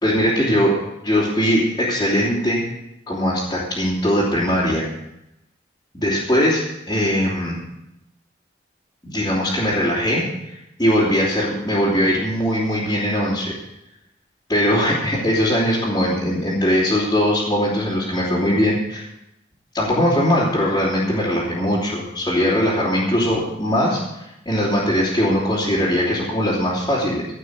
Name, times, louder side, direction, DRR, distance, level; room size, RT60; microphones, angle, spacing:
voice 1, 0.0-0.8 1.0-2.6 3.1-4.8 5.9-6.6 6.9-7.6 9.0-13.5 14.5-19.1 19.7-24.0 24.4-27.3, equal, 20° left, -9 dB, 3.1 m, -20 dB
15.5 x 6.0 x 8.2 m, 0.88 s
head